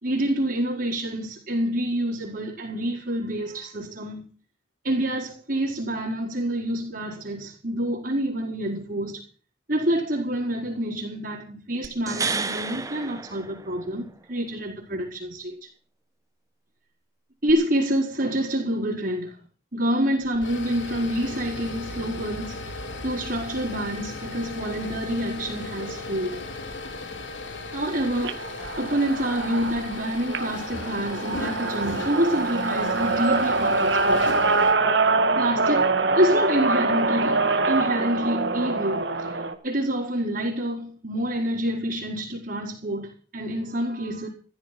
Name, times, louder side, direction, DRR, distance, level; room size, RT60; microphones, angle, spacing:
voice 1, 0.0-4.3 4.8-9.2 9.7-15.6 17.4-19.4 19.7-26.4 27.7-28.4 28.8-34.4 35.4-39.3 39.6-44.3, right 1 dB, 45° right, 5.0 m, -27 dB
sound 1, 11.8-14.1 17.5-17.6, right 4 dB, 15° right, 1.0 m, -31 dB
sound 2, 20.2-34.7, left 3 dB, 75° left, 2.9 m, -36 dB
sound 3, 28.1-39.5, right 3 dB, 65° right, 2.0 m, -24 dB
15.0 x 13.5 x 6.1 m
head